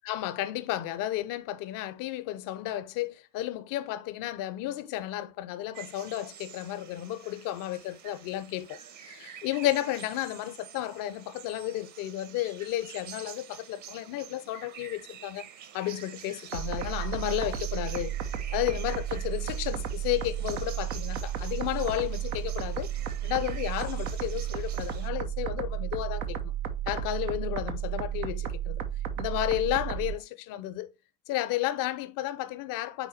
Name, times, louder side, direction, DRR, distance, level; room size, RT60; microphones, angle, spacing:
voice 1, 0.0-15.5 15.7-18.2 18.5-22.9 23.2-26.5 26.9-28.8 29.2-30.9 31.3-33.1, left 14 dB, 50° left, 0.8 m, -32 dB
sound 1, 5.7-25.1, right 9 dB, 45° right, 1.2 m, -47 dB
sound 2, 16.5-30.1, right 9 dB, 75° right, 1.0 m, -33 dB
9.1 x 4.0 x 2.8 m
figure-of-eight pair, 60°, 42 cm